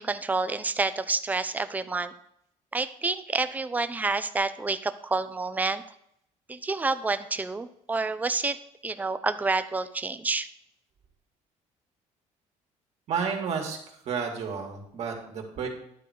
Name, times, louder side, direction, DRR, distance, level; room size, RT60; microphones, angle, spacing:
voice 1, 0.0-2.1 2.7-5.8 6.5-10.5, right 3 dB, 10° right, 11 dB, 0.5 m, -29 dB
voice 2, 13.1-13.8 14.0-15.7, right 6 dB, 55° right, 1 dB, 2.2 m, -31 dB
11.5 x 4.1 x 6.5 m, 0.73 s
cardioid pair, 140°, 13 cm